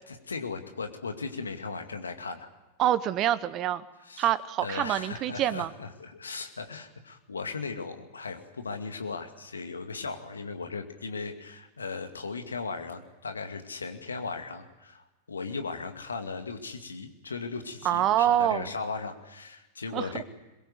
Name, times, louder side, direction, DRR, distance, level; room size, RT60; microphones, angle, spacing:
voice 1, 0.1-2.5 4.0-4.3 4.6-20.2, left 4 dB, 75° left, 6 dB, 2.3 m, -37 dB
voice 2, 2.8-3.8 4.2-5.7 17.8-18.7 19.9-20.1, right 12 dB, 35° right, 16 dB, 1.1 m, -26 dB
22.5 x 22.0 x 8.0 m, 1.1 s
figure-of-eight pair, 90°, 0 cm